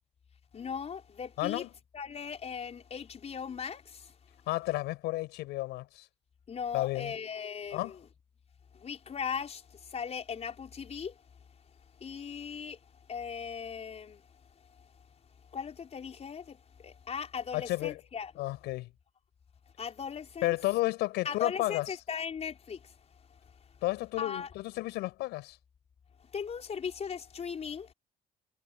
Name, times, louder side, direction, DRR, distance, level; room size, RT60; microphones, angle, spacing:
voice 1, 0.5-1.6 1.9-4.1 6.5-8.0 8.7-9.6 9.9-11.1 12.0-12.8 13.1-14.2 15.5-18.3 19.8-20.5 21.2-22.8 24.2-24.5 26.3-27.9, left 6 dB, 40° left, 5.1 m, -38 dB
voice 2, 1.4-1.7 4.5-6.1 6.7-7.1 7.7-7.9 17.5-18.0 18.4-18.9 20.4-21.9 23.8-25.6, left 18 dB, 90° left, 6.0 m, -32 dB
cardioid pair, 110°, 17 cm